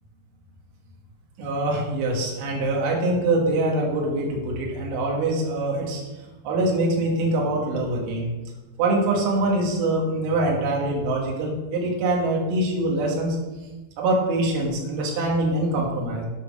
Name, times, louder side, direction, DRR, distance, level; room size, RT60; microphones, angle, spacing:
voice 1, 1.4-6.0 6.4-8.3 8.8-13.4 14.0-16.2, right 2 dB, 55° right, -1 dB, 2.9 m, -24 dB
8.4 x 6.5 x 6.2 m, 1.1 s
omnidirectional pair, 5.3 m